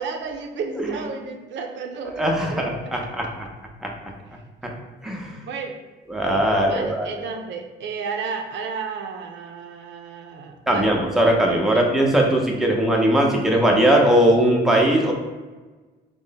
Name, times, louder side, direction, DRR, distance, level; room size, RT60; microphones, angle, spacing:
voice 1, 0.0-2.7 5.5-5.8 6.7-11.0 11.7-11.9, right 5 dB, 65° right, 4 dB, 0.4 m, -32 dB
voice 2, 2.0-3.5 3.8-3.9 5.0-5.3 6.1-7.1 10.7-15.1, right 1 dB, ahead, -1 dB, 0.6 m, -19 dB
3.1 x 2.1 x 3.9 m, 1.3 s
cardioid pair, 90°, 20 cm